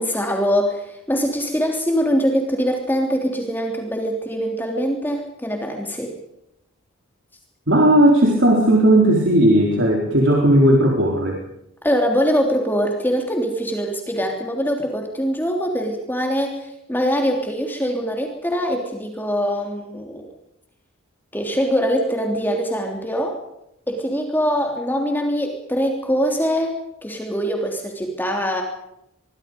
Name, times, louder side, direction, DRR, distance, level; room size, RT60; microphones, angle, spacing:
voice 1, 0.0-6.1 11.8-20.3 21.3-23.4 23.9-28.6, equal, 10° left, 2 dB, 3.3 m, -23 dB
voice 2, 7.7-11.4, right 1 dB, 55° right, 0 dB, 4.2 m, -15 dB
25.5 x 23.0 x 5.3 m, 0.82 s
head